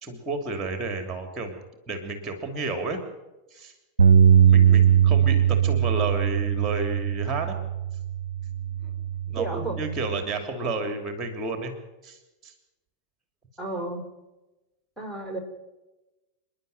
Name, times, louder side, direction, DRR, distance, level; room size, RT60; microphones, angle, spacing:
voice 1, 0.0-1.6 1.9-3.0 3.5-3.7 4.4-7.6 9.3-11.7 12.0-12.5, right 3 dB, 15° right, 6 dB, 2.9 m, -31 dB
Bass guitar, 4.0-10.2, right 8 dB, 70° right, 0.6 m, -21 dB
voice 2, 9.4-9.8 13.6-14.0 15.0-15.4, right 2 dB, ahead, 2 dB, 4.7 m, -32 dB
28.0 x 10.5 x 9.4 m, 1.0 s
figure-of-eight pair, 90°, 0 cm